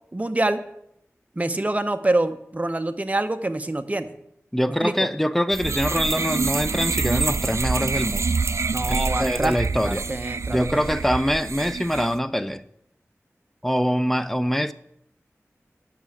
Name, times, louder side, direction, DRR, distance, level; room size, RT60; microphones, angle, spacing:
voice 1, 0.1-0.6 1.4-4.1 4.8-4.9 8.7-11.0, right 2 dB, 25° right, 8 dB, 0.7 m, -26 dB
voice 2, 4.5-8.3 8.9-10.0 10.5-12.6 13.6-14.7, equal, 5° left, 13 dB, 0.5 m, -24 dB
sound 1, 5.5-12.2, right 4 dB, 65° right, 0.3 m, -26 dB
9.1 x 5.9 x 7.0 m, 0.76 s
wide cardioid pair, 65°, 5 cm